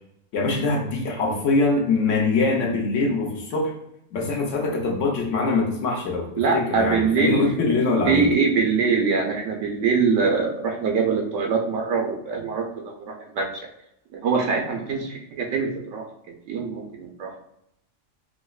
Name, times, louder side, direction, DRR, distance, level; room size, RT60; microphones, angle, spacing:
voice 1, 0.3-3.7 4.1-6.3 6.5-8.3, left 3 dB, 75° left, -1 dB, 1.1 m, -23 dB
voice 2, 6.4-7.5 8.1-13.7 14.1-17.3, right 5 dB, 75° right, 2 dB, 0.9 m, -23 dB
4.9 x 2.0 x 2.3 m, 0.78 s
omnidirectional pair, 1.3 m